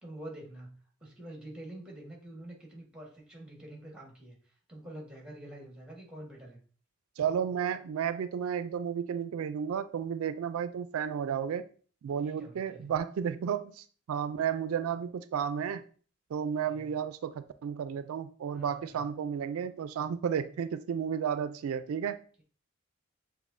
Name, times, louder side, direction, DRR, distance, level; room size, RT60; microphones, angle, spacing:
voice 1, 0.0-6.6 12.2-12.9 16.7-16.9 18.5-19.1, right 1 dB, 5° right, 1.3 m, -47 dB
voice 2, 7.2-11.6 12.0-15.8 16.3-22.2, right 8 dB, 90° right, 0.3 m, -32 dB
7.1 x 2.6 x 2.5 m
head